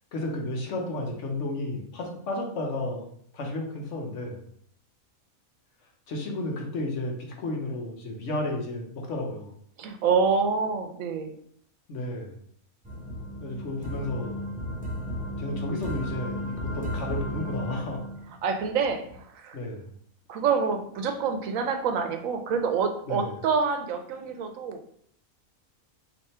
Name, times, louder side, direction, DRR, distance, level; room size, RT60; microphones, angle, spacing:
voice 1, 0.1-3.0 3.3-4.4 6.1-9.5 11.9-12.3 13.4-14.4 15.4-18.0 19.5-19.9 23.1-23.3, left 1 dB, 60° left, 0 dB, 1.1 m, -32 dB
voice 2, 9.8-11.3 18.4-19.6 20.3-24.8, right 5 dB, 75° right, 6 dB, 0.9 m, -27 dB
sound 1, 12.8-19.2, left 1 dB, 10° right, 0.6 m, -34 dB
3.5 x 2.7 x 4.2 m, 0.64 s
omnidirectional pair, 1.5 m